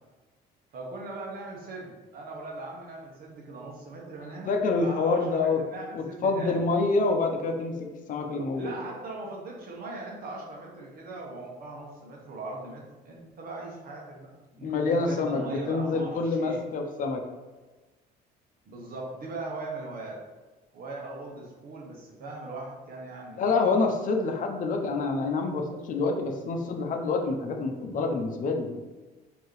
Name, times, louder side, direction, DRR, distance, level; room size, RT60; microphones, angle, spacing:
voice 1, 0.7-6.7 8.5-16.6 18.6-20.2 20.7-23.5, right 2 dB, 60° right, -2 dB, 1.1 m, -40 dB
voice 2, 4.5-5.6 5.9-7.8 8.1-8.7 14.6-17.2 23.4-28.8, left 3 dB, 50° left, 3 dB, 0.7 m, -27 dB
4.5 x 2.9 x 3.2 m, 1.2 s
cardioid pair, 110°, 17 cm